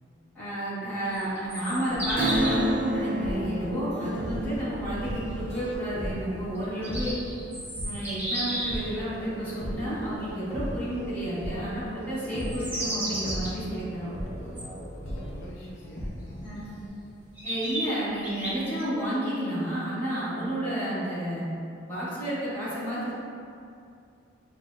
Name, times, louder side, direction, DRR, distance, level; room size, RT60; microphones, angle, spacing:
voice 1, 0.3-7.2 7.8-14.1 16.4-16.8 17.4-21.5 21.9-23.1, right 1 dB, 10° left, -12 dB, 1.3 m, -31 dB
sound 1, 1.0-2.7 6.6-8.9 12.3-13.5 14.6-14.7 16.5-16.6 17.4-18.8, right 1 dB, 10° right, 0.8 m, -33 dB
sound 2, 1.9-16.9, equal, 35° left, 0.7 m, -38 dB
Acoustic guitar / Strum, 2.2-8.4 8.7-8.8, equal, 50° right, 0.4 m, -32 dB
voice 2, 14.3-14.7 15.0-16.6, left 1 dB, 70° left, -5 dB, 0.5 m, -46 dB
5.9 x 2.1 x 2.4 m, 2.5 s
head